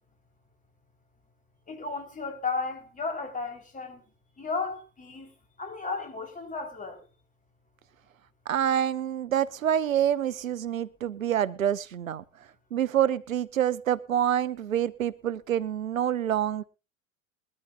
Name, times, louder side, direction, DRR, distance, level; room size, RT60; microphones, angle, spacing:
voice 1, 1.7-4.0 4.4-5.3 5.6-7.0, left 4 dB, 20° left, 4.2 m, -34 dB
voice 2, 8.5-12.2 12.7-16.6, right 10 dB, 85° right, 0.8 m, -27 dB
21.5 x 13.0 x 2.5 m
hypercardioid pair, 90°, 39 cm